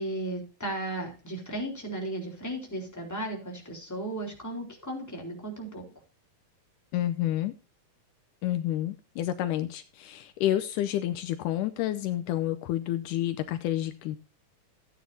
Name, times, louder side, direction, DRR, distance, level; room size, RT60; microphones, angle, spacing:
voice 1, 0.0-5.9, right 1 dB, 5° left, -1 dB, 3.6 m, -35 dB
voice 2, 6.9-7.5 8.4-14.2, left 13 dB, 80° left, 9 dB, 2.2 m, -29 dB
15.5 x 9.3 x 2.7 m, 0.33 s
omnidirectional pair, 3.7 m